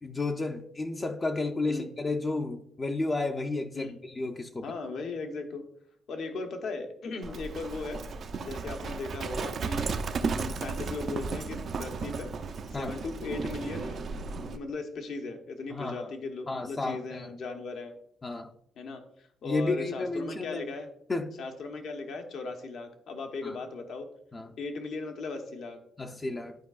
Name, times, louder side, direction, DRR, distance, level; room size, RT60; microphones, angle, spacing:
voice 1, 0.0-4.7 12.7-12.9 15.7-16.0 16.5-17.3 18.2-18.5 19.4-20.6 21.1-21.3 23.4-23.5 24.3-24.5 26.0-26.6, left 2 dB, 30° left, 4 dB, 0.5 m, -32 dB
voice 2, 4.6-5.6 6.1-8.0 8.4-9.9 10.2-12.3 12.7-17.9 18.8-20.9 21.4-24.1 24.6-25.8, left 3 dB, 70° left, 5 dB, 0.9 m, -37 dB
Livestock farm animals working animals, 7.2-14.6, right 4 dB, 55° right, 0.5 m, -34 dB
10.5 x 4.6 x 2.4 m, 0.70 s
cardioid pair, 90°, 0 cm